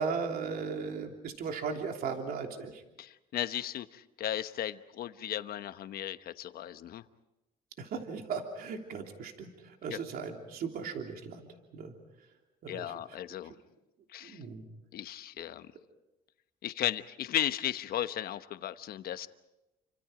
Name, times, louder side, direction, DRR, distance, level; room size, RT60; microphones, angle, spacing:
voice 1, 0.0-2.8 7.8-11.5 11.7-11.9 12.6-12.9 13.4-13.5 14.2-14.6, right 5 dB, 65° right, 3 dB, 3.1 m, -37 dB
voice 2, 3.0-7.0 9.9-10.0 12.7-13.5 14.1-14.4 14.9-15.7 16.6-19.3, left 12 dB, 65° left, 11 dB, 1.1 m, -35 dB
29.5 x 25.5 x 5.1 m, 0.96 s
cardioid pair, 110°, 17 cm